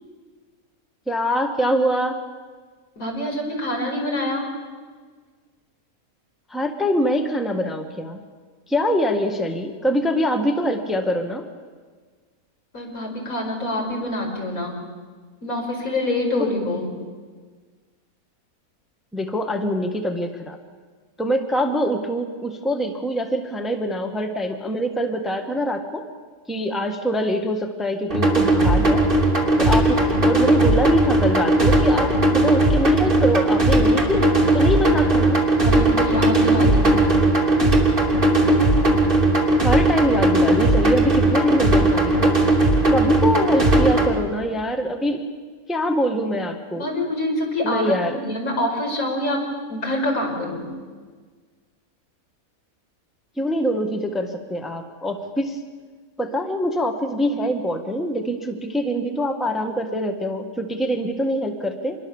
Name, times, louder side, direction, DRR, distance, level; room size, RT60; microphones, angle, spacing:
voice 1, 1.1-2.2 6.5-8.2 8.7-11.4 19.1-20.6 21.2-26.0 26.5-29.0 29.6-34.3 34.5-35.4 39.6-42.3 42.9-45.2 45.7-46.8 47.6-48.2 53.4-55.6 56.2-62.0, equal, ahead, 4 dB, 1.6 m, -24 dB
voice 2, 3.0-4.5 12.7-14.8 15.4-16.9 35.6-37.0 46.7-49.4 49.7-50.7, left 1 dB, 75° left, 0 dB, 5.6 m, -26 dB
sound 1, 28.1-44.1, right 2 dB, 35° right, 3.3 m, -18 dB
26.5 x 21.5 x 7.2 m, 1.5 s
omnidirectional pair, 1.5 m